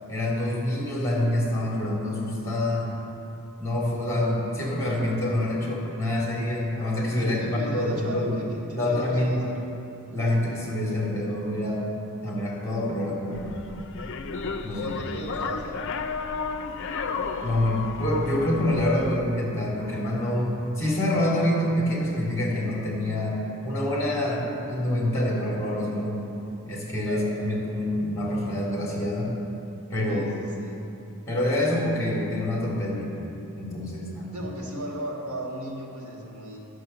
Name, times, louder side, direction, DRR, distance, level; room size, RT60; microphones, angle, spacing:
voice 1, 0.1-2.9 3.6-8.3 8.7-9.3 10.1-11.9 12.2-13.4 14.6-14.9 17.4-26.2 26.7-29.3 29.9-30.3 31.3-33.2 33.6-34.4, left 1 dB, 15° left, -4 dB, 2.6 m, -26 dB
voice 2, 7.2-9.5 14.8-15.7 27.1-27.6 30.1-30.8 34.3-36.6, right 1 dB, 80° right, -2 dB, 2.0 m, -36 dB
sound 1, 13.3-19.2, left 5 dB, 60° left, 0.5 m, -33 dB
10.5 x 6.5 x 6.8 m, 2.8 s
head